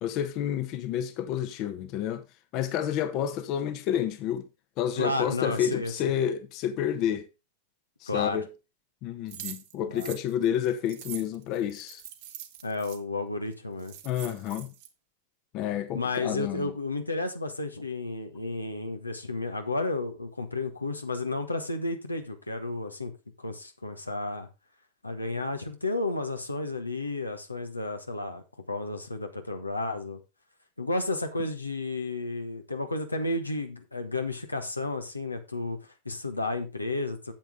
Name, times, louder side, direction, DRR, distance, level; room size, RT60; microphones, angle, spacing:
voice 1, 0.0-2.2 2.5-4.5 4.8-7.3 8.0-8.5 9.0-12.0 14.0-14.7 15.5-16.7, left 10 dB, 40° left, 1.0 m, -29 dB
voice 2, 5.0-6.1 8.1-8.4 9.9-10.1 12.6-13.9 15.9-23.1 23.4-24.5 25.0-28.4 28.7-30.2 30.8-37.3, left 2 dB, 85° left, 1.2 m, -32 dB
sound 1, 9.3-13.0 13.5-13.6 13.8-14.9, right 12 dB, 50° right, 1.3 m, -43 dB
9.0 x 7.7 x 3.6 m
figure-of-eight pair, 90°, 0 cm